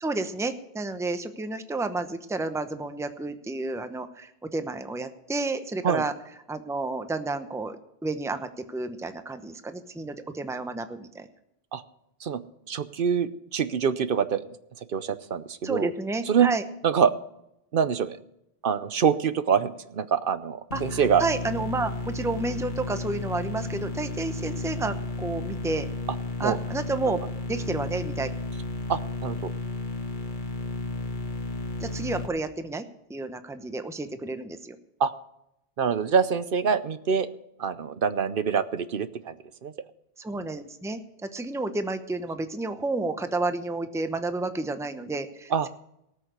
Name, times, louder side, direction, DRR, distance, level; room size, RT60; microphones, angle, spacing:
voice 1, 0.0-6.1 6.5-11.3 15.6-16.6 20.7-25.9 26.4-27.2 27.5-28.3 31.8-34.8 40.2-45.7, right 2 dB, 5° right, 9 dB, 0.8 m, -31 dB
voice 2, 12.7-14.4 14.9-15.9 16.3-16.5 16.8-17.1 17.7-18.2 18.6-21.2 26.4-26.6 28.9-29.5 35.0-35.1 35.8-37.3 37.6-39.7 45.5-45.7, right 7 dB, 60° right, 13 dB, 0.9 m, -25 dB
sound 1, 20.7-32.3, left 2 dB, 50° left, 1.8 m, -33 dB
18.5 x 6.5 x 7.9 m, 0.80 s
omnidirectional pair, 1.1 m